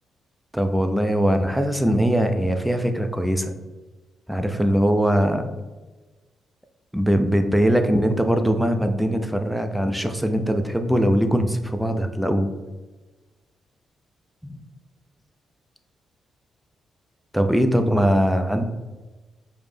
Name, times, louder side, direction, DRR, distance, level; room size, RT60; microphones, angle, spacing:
voice 1, 0.5-3.5 4.3-5.5 6.9-12.5 14.4-14.6 17.3-18.6, equal, 5° right, 6 dB, 0.5 m, -21 dB
4.9 x 2.1 x 3.2 m, 1.2 s
hypercardioid pair, 45°, 0 cm